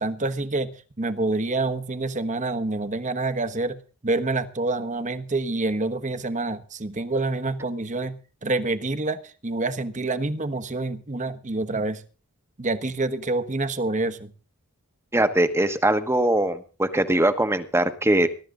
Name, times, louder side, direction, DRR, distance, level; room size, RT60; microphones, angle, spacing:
voice 1, 0.0-12.0 12.6-14.3, right 2 dB, 35° right, 1.2 m, -27 dB
voice 2, 15.1-18.3, right 1 dB, 10° right, 1.2 m, -21 dB
21.0 x 12.0 x 3.8 m
head